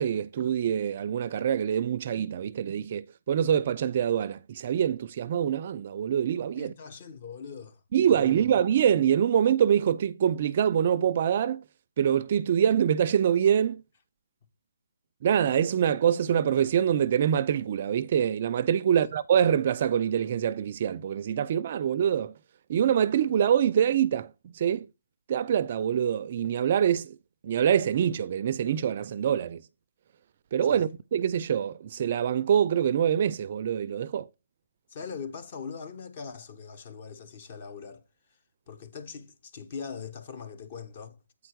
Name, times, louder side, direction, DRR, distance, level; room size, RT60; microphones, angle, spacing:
voice 1, 0.0-6.7 7.9-11.6 12.0-13.8 15.2-22.3 22.7-24.9 25.3-27.2 27.4-29.6 30.5-34.3, right 9 dB, 40° right, 0.4 m, -25 dB
voice 2, 6.6-7.8 8.1-8.4 18.8-19.1 30.7-30.9 34.9-38.0 38.7-41.2, left 6 dB, 35° left, 1.1 m, -41 dB
8.4 x 4.5 x 4.5 m
hypercardioid pair, 160°, 0 cm